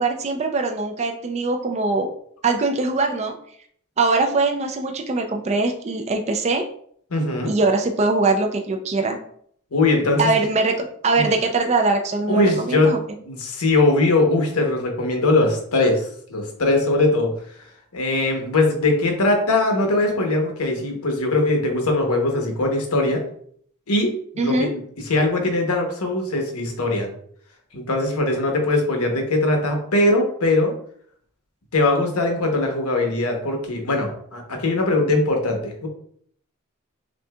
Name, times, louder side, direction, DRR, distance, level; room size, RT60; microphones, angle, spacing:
voice 1, 0.0-2.1 2.4-3.3 4.0-6.6 7.4-9.2 10.2-13.0 24.4-24.7, right 3 dB, 30° right, 4 dB, 0.4 m, -22 dB
voice 2, 7.1-7.5 9.7-10.3 11.2-11.3 12.3-12.9 13.2-17.3 17.9-23.2 23.9-24.7 25.0-27.1 27.7-30.7 31.7-35.9, left 2 dB, 85° left, 3 dB, 1.0 m, -21 dB
6.1 x 2.7 x 2.3 m, 0.62 s
head